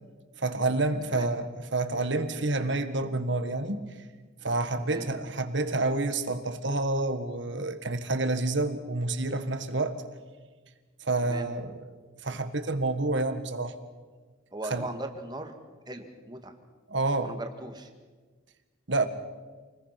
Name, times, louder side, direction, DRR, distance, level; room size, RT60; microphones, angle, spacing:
voice 1, 0.4-3.8 4.4-10.0 11.0-11.9 12.2-13.8 14.7-14.9 16.9-17.4 18.9-19.1, right 2 dB, 60° right, 9 dB, 1.7 m, -28 dB
voice 2, 14.5-15.5 15.9-16.5 17.2-17.9, right 2 dB, 20° right, 5 dB, 1.9 m, -39 dB
28.5 x 20.5 x 5.9 m, 1.4 s
head